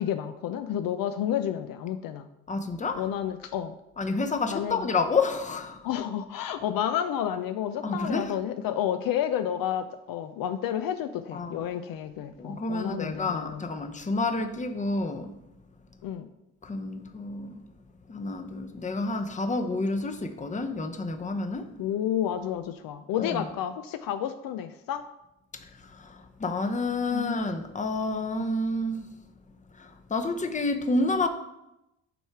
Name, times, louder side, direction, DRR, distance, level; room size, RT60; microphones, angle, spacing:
voice 1, 0.0-2.3 3.0-3.7 4.5-4.9 5.8-13.6 16.0-16.3 21.8-25.0 27.1-27.4, left 10 dB, 65° left, 9 dB, 0.5 m, -30 dB
voice 2, 2.5-3.1 4.0-5.9 7.8-8.3 11.3-11.6 12.4-15.4 16.6-17.6 18.1-21.7 23.2-23.4 25.5-29.1 29.7-31.3, left 3 dB, 20° left, 7 dB, 0.7 m, -29 dB
7.8 x 3.2 x 4.5 m, 0.89 s
supercardioid pair, 65°, 38 cm